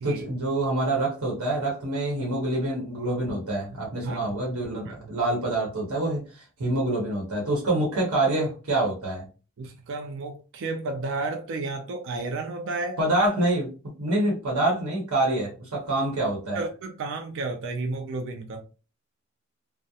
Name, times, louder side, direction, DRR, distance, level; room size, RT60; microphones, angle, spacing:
voice 1, 0.0-9.2 13.0-16.6, right 2 dB, 90° right, 0.9 m, -26 dB
voice 2, 9.6-13.0 16.5-18.6, right 3 dB, 60° right, 0.4 m, -32 dB
2.3 x 2.0 x 2.7 m
head